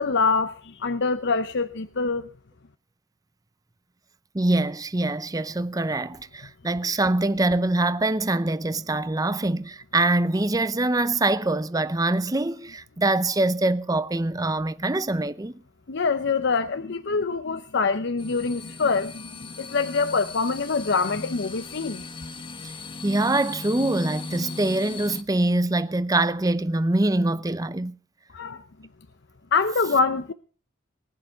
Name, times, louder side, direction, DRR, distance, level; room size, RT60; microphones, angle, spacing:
voice 1, 0.0-2.3 15.9-22.0 28.3-28.6 29.5-30.3, left 4 dB, 60° left, 0.7 m, -25 dB
voice 2, 4.3-15.5 22.6-22.7 23.0-27.9, right 2 dB, 20° right, 0.6 m, -24 dB
sound 1, 18.2-25.2, left 3 dB, 25° left, 1.1 m, -38 dB
19.5 x 10.0 x 5.5 m
head